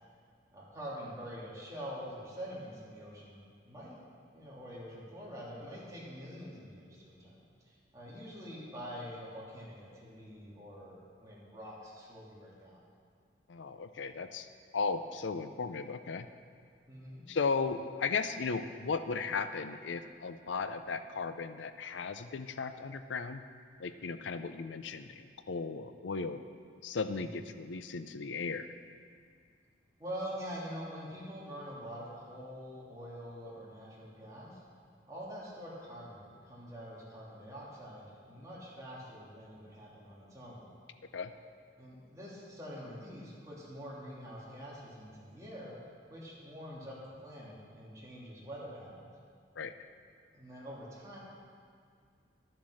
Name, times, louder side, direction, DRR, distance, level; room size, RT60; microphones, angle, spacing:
voice 1, 0.5-4.0 4.3-12.8 16.9-17.2 27.1-27.4 30.0-34.6 35.1-40.7 41.8-45.7 46.1-47.0 47.2-49.1 50.3-51.2, equal, 20° right, -7 dB, 2.9 m, -45 dB
voice 2, 13.5-14.5 14.7-16.3 17.3-23.4 23.8-26.4 26.8-28.7 41.1-41.3 49.6-49.7, left 4 dB, 80° left, 10 dB, 0.5 m, -36 dB
12.5 x 7.3 x 6.4 m, 2.2 s
head